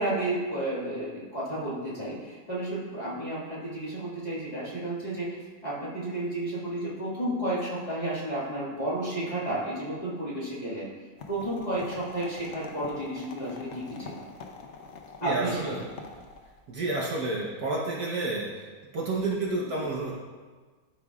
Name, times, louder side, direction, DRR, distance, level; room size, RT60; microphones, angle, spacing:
voice 1, 0.0-5.3 5.6-10.9 11.3-14.2 15.2-15.8 19.6-19.7, right 1 dB, 20° left, -10 dB, 1.9 m, -32 dB
sound 1, 11.2-16.6, left 4 dB, 65° left, 0.7 m, -45 dB
voice 2, 15.2-15.8 16.7-18.7 18.9-20.1, right 2 dB, 60° right, -4 dB, 1.3 m, -30 dB
12.5 x 4.9 x 2.4 m, 1.5 s
omnidirectional pair, 2.0 m